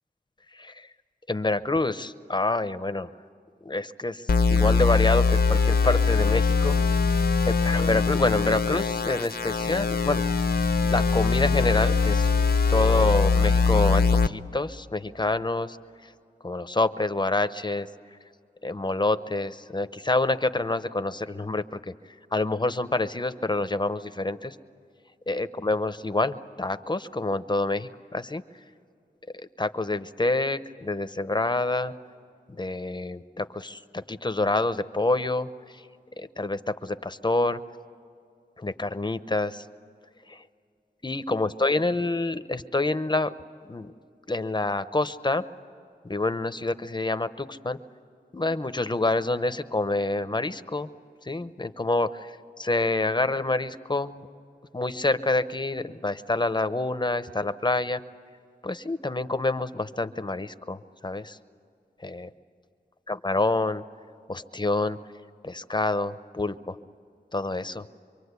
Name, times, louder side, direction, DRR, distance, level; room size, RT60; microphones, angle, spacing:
voice 1, 0.5-0.9 1.3-3.1 3.6-6.8 7.4-10.2 10.8-12.3 12.7-15.8 16.0-16.1 16.4-17.9 18.6-21.9 22.3-24.6 25.3-28.4 29.3-31.9 32.5-35.8 36.2-37.6 38.6-39.7 40.3-40.4 41.0-43.3 43.6-43.9 44.3-45.4 46.0-47.8 48.3-50.9 51.2-54.3 54.7-58.0 58.6-61.4 62.0-62.3 63.1-63.8 64.3-65.0 65.4-66.8 67.3-67.8, left 2 dB, 25° left, 12 dB, 0.7 m, -27 dB
sound 1, 4.3-14.3, left 4 dB, 65° left, 0.8 m, -22 dB
26.0 x 23.5 x 8.2 m, 2.4 s
wide cardioid pair, 90°, 17 cm